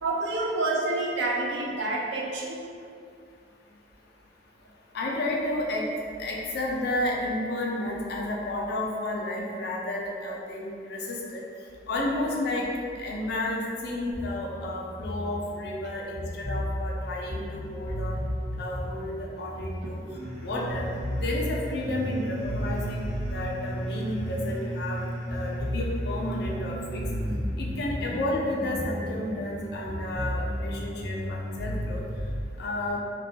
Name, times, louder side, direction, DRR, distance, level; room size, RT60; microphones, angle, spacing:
voice 1, 0.0-2.6, right 2 dB, 75° right, -2 dB, 0.4 m, -28 dB
voice 2, 4.9-5.9 6.2-11.4 11.9-12.7 13.0-18.2 18.6-20.0 20.4-20.9 21.2-25.0 25.3-27.0 27.6-32.0 32.6-33.0, left 1 dB, 60° left, -2 dB, 0.4 m, -31 dB
sound 1, 14.1-20.4 20.7-25.0 25.3-29.6 29.8-32.4, equal, 5° left, 0.7 m, -34 dB
sound 2, 20.1-32.0, right 1 dB, 55° right, 0.8 m, -37 dB
2.2 x 2.1 x 2.6 m, 2.3 s
head